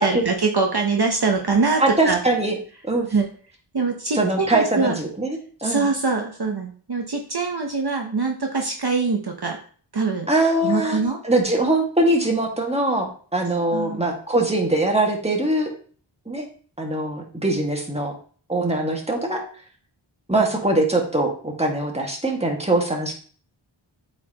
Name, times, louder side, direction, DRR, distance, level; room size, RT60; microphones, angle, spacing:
voice 1, 0.0-2.2 3.1-3.3 3.7-5.0 5.6-9.6 9.9-10.3 10.6-11.2 13.7-14.0, right 4 dB, 55° right, 2 dB, 0.9 m, -23 dB
voice 2, 1.8-2.6 2.9-3.1 4.1-5.9 10.3-15.7 16.2-16.5 16.8-18.1 18.5-19.4 20.3-23.1, right 2 dB, 15° right, 1 dB, 1.7 m, -22 dB
8.1 x 4.4 x 2.9 m, 0.43 s
wide cardioid pair, 40°, 47 cm